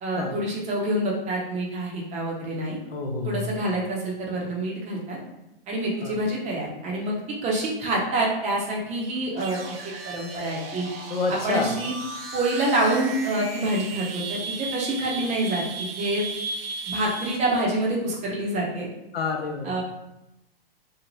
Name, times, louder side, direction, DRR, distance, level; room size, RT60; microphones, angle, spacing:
voice 1, 0.0-2.8 3.2-5.2 5.7-7.1 7.4-10.9 11.4-11.9 12.3-16.2 16.9-18.9 19.6-19.8, right 1 dB, 25° right, -2 dB, 0.6 m, -27 dB
voice 2, 2.9-3.4 6.0-6.2 11.1-11.7 19.1-19.8, left 4 dB, 80° left, 3 dB, 0.6 m, -28 dB
sound 1, 9.3-17.6, right 4 dB, 75° right, 0.6 m, -35 dB
2.6 x 2.1 x 3.0 m, 0.89 s
hypercardioid pair, 115°, 30 cm